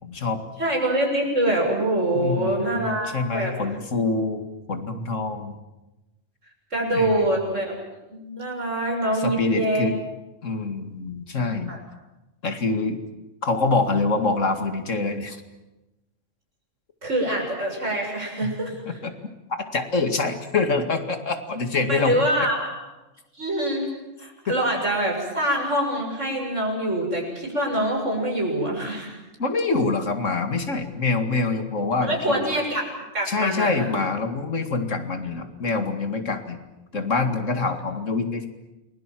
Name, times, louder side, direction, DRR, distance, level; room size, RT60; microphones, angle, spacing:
voice 1, 0.0-0.4 2.1-5.6 6.9-7.3 9.1-10.0 10.4-11.7 12.4-13.0 13.4-15.4 18.4-18.5 18.9-19.1 19.7-22.2 29.4-32.5 33.3-36.6 36.9-38.5, left 3 dB, 90° left, 7 dB, 2.6 m, -25 dB
voice 2, 0.6-3.5 6.7-7.8 8.1-9.9 11.7-11.8 17.0-18.8 21.9-22.7 23.4-23.9 24.2-29.2 32.0-32.8 33.1-33.9, right 1 dB, 80° right, -1 dB, 7.5 m, -25 dB
29.0 x 21.5 x 7.6 m, 1.0 s
omnidirectional pair, 1.3 m